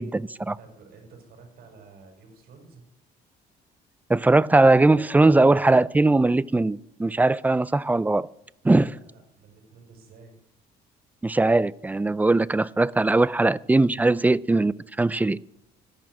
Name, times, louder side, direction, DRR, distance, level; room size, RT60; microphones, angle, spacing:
voice 1, 0.0-0.6 4.1-8.3 8.6-8.9 11.2-15.4, right 2 dB, 10° right, 0.4 m, -20 dB
voice 2, 0.6-2.8 8.6-10.4, right 4 dB, 65° right, 5.4 m, -50 dB
13.5 x 10.5 x 6.2 m
cardioid pair, 110°, 17 cm